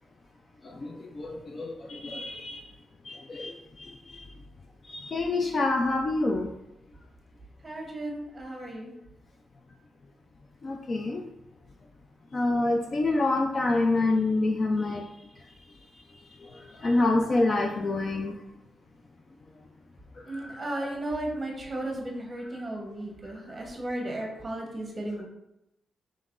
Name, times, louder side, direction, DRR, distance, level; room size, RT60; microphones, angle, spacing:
voice 1, 0.8-2.6 3.1-4.2 4.9-6.5 10.6-11.2 12.3-15.0 16.8-18.3 20.3-20.6, left 2 dB, 30° left, 2 dB, 0.3 m, -27 dB
voice 2, 7.6-8.9 20.3-25.2, right 1 dB, 20° right, 0 dB, 0.9 m, -35 dB
5.3 x 3.1 x 2.4 m, 0.87 s
wide cardioid pair, 170°, 0 cm